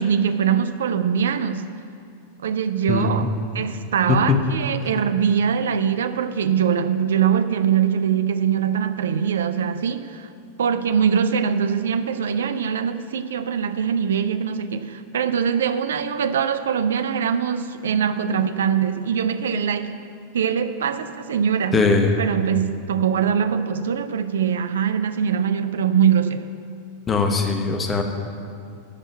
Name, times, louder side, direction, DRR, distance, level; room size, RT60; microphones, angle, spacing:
voice 1, 0.0-1.7 2.4-3.3 3.5-10.3 10.6-20.1 20.3-21.9 22.2-26.5, right 7 dB, 65° right, 11 dB, 0.5 m, -22 dB
voice 2, 21.7-22.1 27.1-28.0, left 4 dB, 20° left, 4 dB, 1.1 m, -20 dB
10.5 x 5.5 x 8.5 m, 2.4 s
figure-of-eight pair, 90°, 0 cm